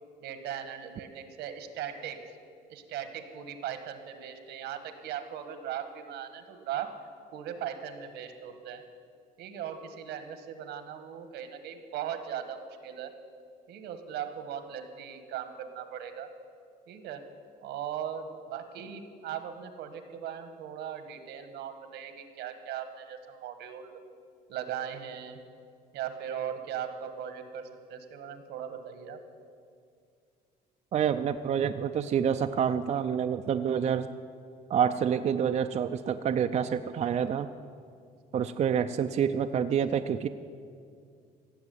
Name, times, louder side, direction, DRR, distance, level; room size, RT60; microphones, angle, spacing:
voice 1, 0.2-2.2 2.7-6.9 7.3-8.8 9.4-13.1 13.7-16.3 16.9-17.2 17.6-24.0 24.5-25.4 25.9-29.2, right 9 dB, 80° right, 9 dB, 1.4 m, -38 dB
voice 2, 30.9-34.1 34.7-37.5 38.3-40.3, right 8 dB, 40° right, 8 dB, 0.5 m, -27 dB
15.5 x 7.1 x 9.4 m, 2.3 s
cardioid pair, 110°, 17 cm